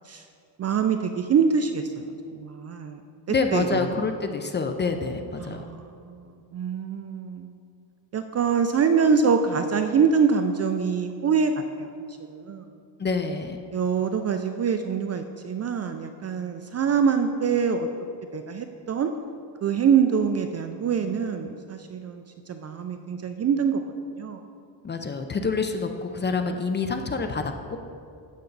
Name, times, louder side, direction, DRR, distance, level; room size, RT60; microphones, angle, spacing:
voice 1, 0.6-3.0 3.5-4.0 5.4-7.5 8.1-11.5 11.8-11.9 12.3-12.6 13.7-17.9 18.3-19.1 19.6-22.2 22.5-23.8 24.2-24.4, right 6 dB, 35° right, 7 dB, 0.4 m, -24 dB
voice 2, 3.3-5.7 13.0-13.6 24.8-27.8, left 4 dB, 25° left, 6 dB, 0.5 m, -27 dB
12.5 x 8.3 x 3.9 m, 2.4 s
cardioid pair, 140°, 49 cm